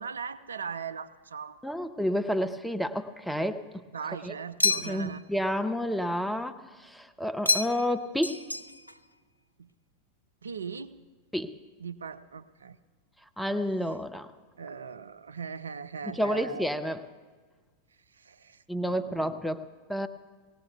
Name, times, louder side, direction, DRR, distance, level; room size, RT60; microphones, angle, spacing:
voice 1, 0.0-1.9 3.9-5.2 9.6-9.7 10.4-11.0 11.8-12.8 14.6-16.7 18.1-19.4, right 6 dB, 70° right, 12 dB, 0.4 m, -39 dB
voice 2, 1.6-3.8 4.2-4.3 4.6-8.4 11.3-11.5 13.4-14.3 16.2-17.0 18.7-20.1, equal, ahead, 9 dB, 0.5 m, -30 dB
sound 1, 4.6-5.2 7.4-7.9 8.2-9.0, left 2 dB, 85° left, 0.3 m, -28 dB
20.0 x 18.0 x 2.3 m, 1.5 s
figure-of-eight pair, 90°, 0 cm